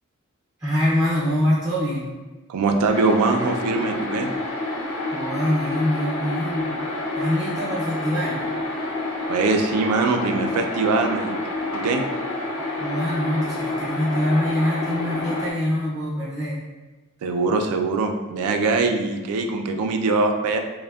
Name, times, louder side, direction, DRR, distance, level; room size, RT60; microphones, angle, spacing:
voice 1, 0.6-2.1 5.1-6.8 7.2-8.6 12.8-16.6, left 1 dB, 15° right, -8 dB, 0.4 m, -24 dB
voice 2, 2.5-4.3 9.3-11.4 11.7-12.0 17.2-20.6, right 3 dB, 90° right, 4 dB, 0.3 m, -22 dB
sound 1, 2.9-15.5, left 2 dB, 80° left, 0.5 m, -28 dB
3.3 x 2.1 x 2.2 m, 1.2 s
head